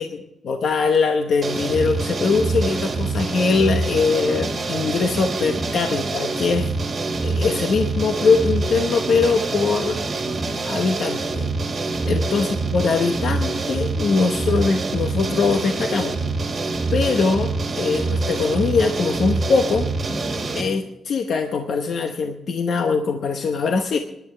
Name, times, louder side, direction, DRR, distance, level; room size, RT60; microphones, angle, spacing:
voice 1, 0.0-6.7 7.2-10.0 10.6-11.5 12.0-16.2 16.9-19.9 20.5-24.0, left 4 dB, 55° left, 5 dB, 0.9 m, -22 dB
sound 1, 1.4-20.6, right 3 dB, 30° right, 2.0 m, -25 dB
25.5 x 11.0 x 3.3 m, 0.95 s
wide cardioid pair, 180°, 0 cm